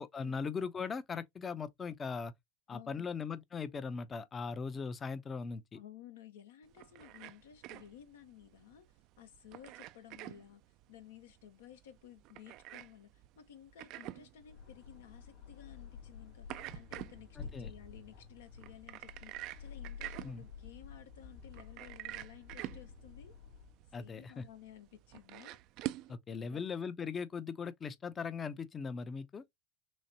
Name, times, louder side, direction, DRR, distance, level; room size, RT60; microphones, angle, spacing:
voice 1, 0.0-2.3 2.7-5.8 17.4-17.7 20.2-20.4 23.9-24.4 26.1-29.4, left 5 dB, 25° left, 0.6 m, -39 dB
voice 2, 2.7-3.1 5.7-8.9 9.2-10.6 10.9-23.3 23.9-25.6 26.3-26.6, left 11 dB, 80° left, 1.1 m, -55 dB
sound 1, 6.6-26.1, right 16 dB, 50° right, 0.3 m, -48 dB
sound 2, 14.3-23.9, left 6 dB, 55° left, 2.7 m, -51 dB
6.2 x 2.1 x 2.8 m
hypercardioid pair, 105°, 0 cm